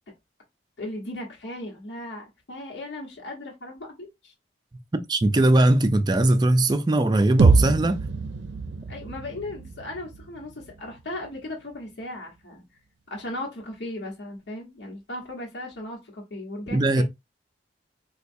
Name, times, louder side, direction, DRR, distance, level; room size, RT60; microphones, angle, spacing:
voice 1, 0.8-4.3 8.9-12.6 13.1-17.0, left 1 dB, 75° left, 1.1 m, -37 dB
voice 2, 5.1-8.0 16.7-17.0, right 1 dB, 25° right, 0.4 m, -20 dB
sound 1, 7.4-11.4, right 3 dB, 80° right, 0.5 m, -24 dB
4.4 x 2.3 x 2.6 m
head